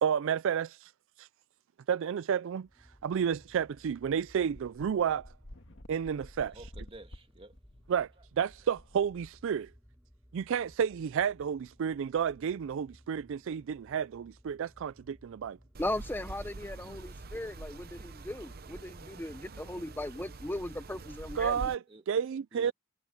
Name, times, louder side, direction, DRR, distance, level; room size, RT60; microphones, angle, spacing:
voice 1, 0.0-0.9 1.2-1.3 1.9-2.7 3.0-5.3 5.9-6.6 7.9-8.1 8.4-9.7 10.3-15.6 21.4-21.8 22.1-22.7, right 7 dB, 65° right, 0.3 m, -31 dB
sound 1, 2.6-18.0, equal, 5° right, 6.3 m, -60 dB
sound 2, 3.5-3.6 3.9-4.0 4.5-9.7, left 1 dB, 60° left, 1.8 m, -51 dB
voice 2, 6.5-7.6 21.9-22.2 22.5-22.7, right 2 dB, 25° right, 2.2 m, -51 dB
sound 3, 15.7-21.7, right 3 dB, 45° right, 0.8 m, -45 dB
voice 3, 15.8-21.7, left 1 dB, 10° left, 0.6 m, -38 dB
head